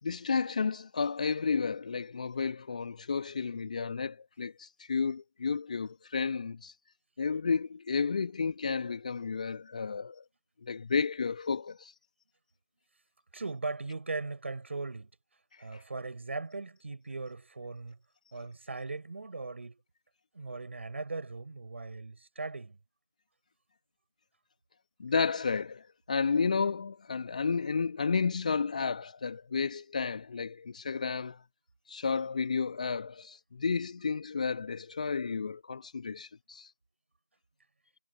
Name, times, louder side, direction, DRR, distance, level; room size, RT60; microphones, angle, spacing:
voice 1, 0.0-6.7 7.2-10.2 10.6-11.9 15.5-15.8 25.0-31.4 31.9-36.7, left 5 dB, 20° left, 2.1 m, -32 dB
voice 2, 13.3-15.1 15.6-18.0 18.3-19.8 20.3-22.8, right 3 dB, 35° right, 6.0 m, -39 dB
figure-of-eight pair, 165°, 11 cm